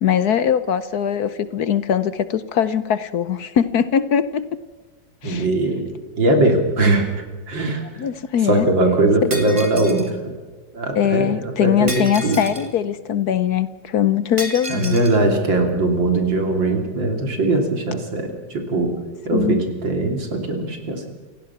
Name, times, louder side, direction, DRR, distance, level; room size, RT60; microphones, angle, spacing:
voice 1, 0.0-4.6 5.2-5.5 8.0-8.7 9.2-9.3 10.9-15.0 19.3-19.6, left 9 dB, 60° left, 14 dB, 1.2 m, -21 dB
voice 2, 5.2-5.9 6.2-7.1 7.5-7.9 8.4-10.3 10.7-12.4 14.7-19.0 19.3-21.1, right 2 dB, 75° right, 4 dB, 3.8 m, -20 dB
Shatter, 9.3-10.1 11.9-12.7 14.4-15.2, right 1 dB, 15° right, 1.9 m, -32 dB
28.5 x 16.5 x 6.0 m, 1.4 s
omnidirectional pair, 2.0 m